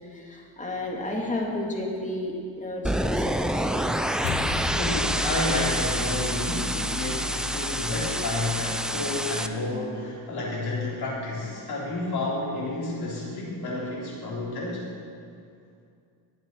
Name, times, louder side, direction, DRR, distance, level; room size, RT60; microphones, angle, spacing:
voice 1, 0.1-3.7, left 1 dB, 15° left, -1 dB, 2.0 m, -32 dB
sound 1, 2.8-9.5, equal, ahead, 0.3 m, -28 dB
sound 2, 4.2-8.8, left 3 dB, 85° left, 1.1 m, -34 dB
voice 2, 4.7-14.8, left 2 dB, 65° left, -5 dB, 3.7 m, -30 dB
20.0 x 7.6 x 4.5 m, 2.4 s
cardioid pair, 135°, 42 cm